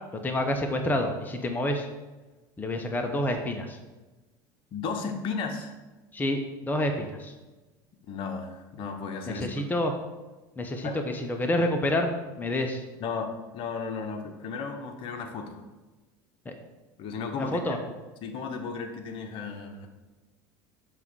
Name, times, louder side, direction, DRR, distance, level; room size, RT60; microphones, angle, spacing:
voice 1, 0.2-1.9 2.6-3.8 6.1-7.3 9.3-9.9 10.6-12.1 12.4-12.8 16.4-16.5 17.3-17.8, left 1 dB, 15° left, 4 dB, 0.9 m, -28 dB
voice 2, 4.7-5.7 8.1-9.5 10.8-11.0 13.0-15.6 17.0-17.8 18.2-19.9, left 5 dB, 55° left, 5 dB, 1.1 m, -34 dB
6.9 x 3.7 x 6.2 m, 1.2 s
hypercardioid pair, 90°, 11 cm